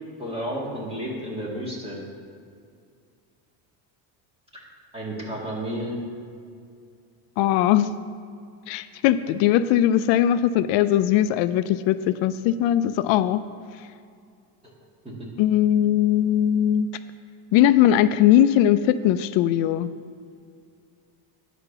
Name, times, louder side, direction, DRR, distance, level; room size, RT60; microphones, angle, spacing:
voice 1, 0.2-2.0 4.9-6.0 15.0-15.3, equal, 10° right, -3 dB, 1.9 m, -31 dB
voice 2, 7.4-7.9 8.7-13.4 15.4-16.9 17.5-19.9, left 11 dB, 75° left, 13 dB, 0.5 m, -20 dB
9.9 x 5.1 x 6.7 m, 2.3 s
cardioid pair, 155°, 46 cm